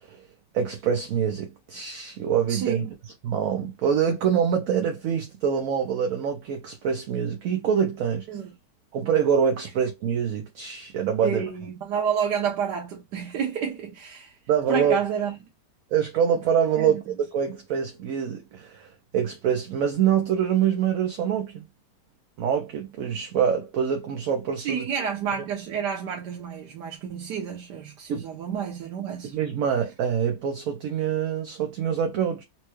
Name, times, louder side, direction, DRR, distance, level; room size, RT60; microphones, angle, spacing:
voice 1, 0.5-2.9 3.2-8.3 8.9-11.4 14.5-15.0 15.9-21.6 22.4-24.9 25.3-25.4 28.1-28.2 29.2-32.4, right 8 dB, 65° right, 0.9 m, -25 dB
voice 2, 2.5-2.9 8.3-8.5 11.2-14.3 14.7-15.3 16.8-17.0 24.6-29.4, right 7 dB, 80° right, 1.4 m, -29 dB
4.4 x 2.3 x 3.0 m
omnidirectional pair, 1.8 m